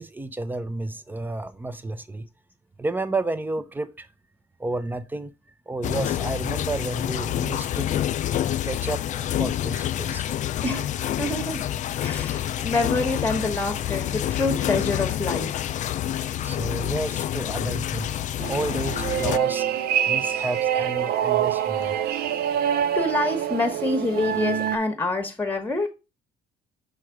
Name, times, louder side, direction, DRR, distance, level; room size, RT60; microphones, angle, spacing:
voice 1, 0.0-2.3 2.8-4.1 4.6-5.3 5.7-7.9 8.6-10.2 16.4-18.1 18.5-19.7 20.0-22.0, right 2 dB, 10° right, 0.6 m, -31 dB
sound 1, 5.8-19.4, left 11 dB, 45° left, 0.4 m, -27 dB
voice 2, 10.6-10.9 11.2-11.6 12.0-15.6 22.9-25.9, left 2 dB, 10° left, 1.2 m, -26 dB
sound 2, 18.4-24.8, right 9 dB, 70° right, 0.5 m, -25 dB
6.3 x 3.2 x 4.6 m
cardioid pair, 110°, 17 cm